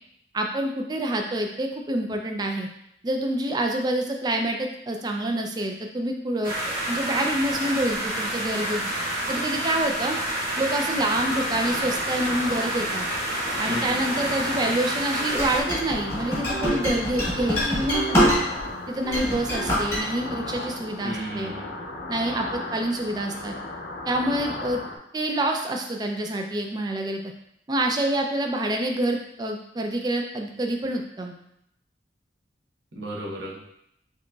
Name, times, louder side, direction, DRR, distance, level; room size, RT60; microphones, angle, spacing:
voice 1, 0.3-2.7 3.0-8.8 9.3-10.2 10.6-13.1 13.6-18.3 18.9-21.5 22.1-23.5 24.1-24.8 25.1-27.2 27.7-31.3, right 1 dB, 20° right, 3 dB, 0.3 m, -27 dB
sound 1, 6.4-15.6, right 1 dB, 55° right, 1.4 m, -29 dB
sound 2, 11.0-25.0, left 2 dB, 75° left, 0.6 m, -36 dB
voice 2, 13.6-14.0 21.0-21.7 32.9-33.6, equal, 75° right, -3 dB, 1.0 m, -34 dB
sound 3, 15.4-18.7 19.0-20.0, equal, 15° left, 1.3 m, -24 dB
4.8 x 2.9 x 2.3 m, 0.76 s
head